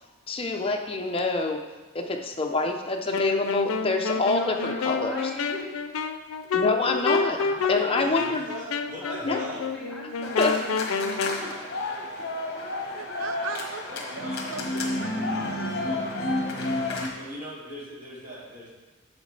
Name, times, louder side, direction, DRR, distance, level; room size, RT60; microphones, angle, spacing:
voice 1, 0.3-1.6 1.9-5.1 6.5-7.4 7.7-8.5 9.2-9.4 10.4-10.5, left 3 dB, 25° left, 3 dB, 0.6 m, -26 dB
Wind instrument woodwind instrument, 3.1-11.4, left 5 dB, 85° left, 0.5 m, -29 dB
voice 2, 4.1-5.8 8.3-8.4 9.0-11.8 12.5-12.6 13.0-13.4, left 1 dB, ahead, -9 dB, 1.2 m, -40 dB
voice 3, 7.7-9.6 13.9-14.6 17.1-18.7, equal, 35° right, -7 dB, 2.5 m, -40 dB
sound 1, 10.2-17.1, left 2 dB, 50° left, 1.2 m, -31 dB
voice 4, 12.9-13.8 14.1-16.2, right 6 dB, 70° right, 10 dB, 0.5 m, -39 dB
9.1 x 6.3 x 3.3 m, 1.2 s
head